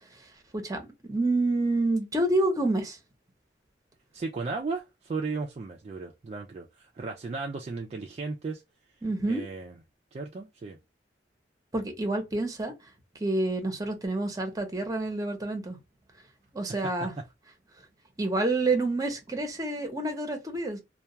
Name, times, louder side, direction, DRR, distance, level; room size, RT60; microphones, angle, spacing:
voice 1, 1.1-3.0 9.0-9.4 11.7-12.7 13.2-15.8 16.5-17.1 18.2-20.8, right 2 dB, 20° right, 0.7 m, -28 dB
voice 2, 4.1-8.6 9.3-9.7 10.1-10.8 16.7-16.9, right 3 dB, 35° right, 0.3 m, -35 dB
2.2 x 2.2 x 2.7 m
head